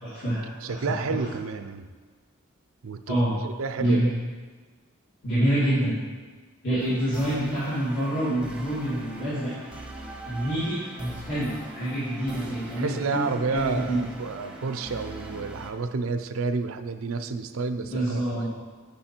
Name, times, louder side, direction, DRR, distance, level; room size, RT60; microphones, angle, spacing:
voice 1, 0.0-0.8 1.1-1.2 3.1-3.3 3.8-4.1 5.2-6.0 6.6-9.5 10.3-13.2 13.5-14.0 17.9-18.5, right 1 dB, 60° left, -12 dB, 2.5 m, -27 dB
voice 2, 0.6-1.9 2.8-3.2 3.4-4.1 6.7-6.8 12.8-18.5, right 4 dB, 75° right, 8 dB, 0.5 m, -30 dB
sound 1, 6.8-15.7, right 2 dB, 5° right, 0.8 m, -42 dB
8.8 x 5.6 x 4.4 m, 1.5 s
head